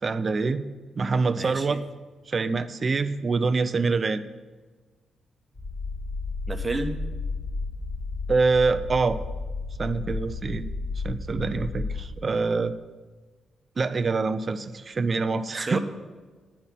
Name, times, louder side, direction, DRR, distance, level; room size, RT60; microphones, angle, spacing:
voice 1, 0.0-0.6 0.9-1.8 2.3-4.2 8.3-9.2 9.8-10.7 11.0-12.7 13.8-15.8, right 4 dB, 45° right, 12 dB, 0.6 m, -25 dB
voice 2, 1.3-1.8 6.5-7.0 15.5-15.8, right 2 dB, 30° right, 7 dB, 1.1 m, -30 dB
sound 1, 5.5-12.1, left 3 dB, 45° left, 3.6 m, -33 dB
9.5 x 5.9 x 7.3 m, 1.4 s
supercardioid pair, 55°, 0 cm